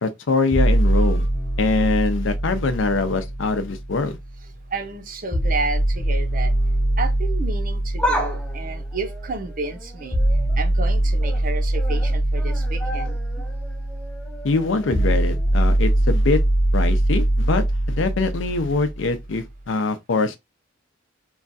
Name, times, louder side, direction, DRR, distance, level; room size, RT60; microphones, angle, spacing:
voice 1, 0.0-1.3 1.6-4.2 14.4-16.4 16.7-20.4, left 3 dB, 70° left, 0.5 m, -23 dB
sound 1, 0.5-4.5 5.3-19.3, right 1 dB, 30° left, 1.0 m, -22 dB
voice 2, 4.7-6.5 7.0-10.2 10.6-13.2, right 3 dB, 45° right, 0.6 m, -31 dB
sound 2, 7.9-10.6 11.0-11.4 11.7-15.7 16.0-16.1 17.1-17.2, equal, 5° left, 0.5 m, -33 dB
3.1 x 2.3 x 2.5 m
head